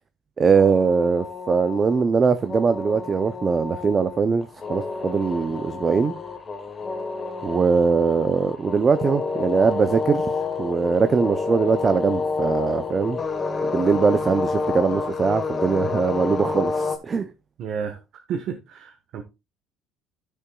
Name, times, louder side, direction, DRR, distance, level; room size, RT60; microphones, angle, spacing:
voice 1, 0.4-6.1 7.4-13.2 13.6-17.3, right 5 dB, 25° right, 0.5 m, -21 dB
sound 1, 0.5-17.0, left 4 dB, 20° left, 1.2 m, -29 dB
voice 2, 17.6-18.0 18.3-19.2, right 7 dB, 50° right, 1.0 m, -31 dB
12.5 x 6.9 x 2.3 m
cardioid pair, 155°, 0 cm